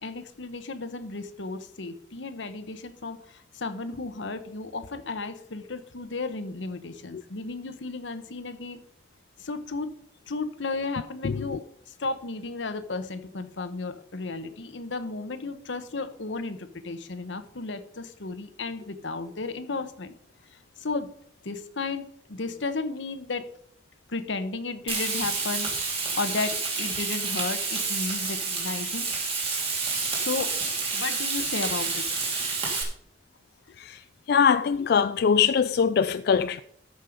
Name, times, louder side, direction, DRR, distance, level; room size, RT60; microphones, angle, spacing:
voice 1, 0.0-8.8 9.4-9.9 10.3-20.1 20.8-21.1 21.4-23.5 24.1-29.1 30.1-30.6 30.9-32.0, left 3 dB, 80° left, 1.0 m, -34 dB
voice 2, 11.2-11.6 33.8-36.6, left 6 dB, 55° left, 0.3 m, -23 dB
Frying (food), 24.9-32.8, right 4 dB, 30° right, 2.7 m, -29 dB
13.5 x 5.6 x 5.1 m
head